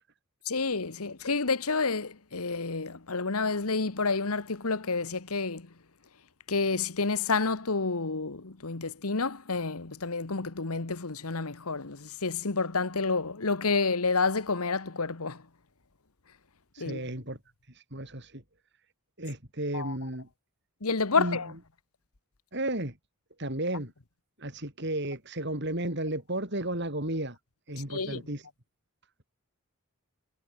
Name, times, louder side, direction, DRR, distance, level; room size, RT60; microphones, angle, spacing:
voice 1, 0.4-5.7 6.5-15.4 16.8-17.0 19.7-20.0 20.8-21.5 27.9-28.2, left 4 dB, 80° left, 1.5 m, -29 dB
voice 2, 16.7-17.4 17.9-18.4 19.2-20.3 21.1-21.4 22.5-22.9 23.4-23.9 24.4-27.4 27.7-28.4, right 1 dB, 50° right, 6.0 m, -33 dB
head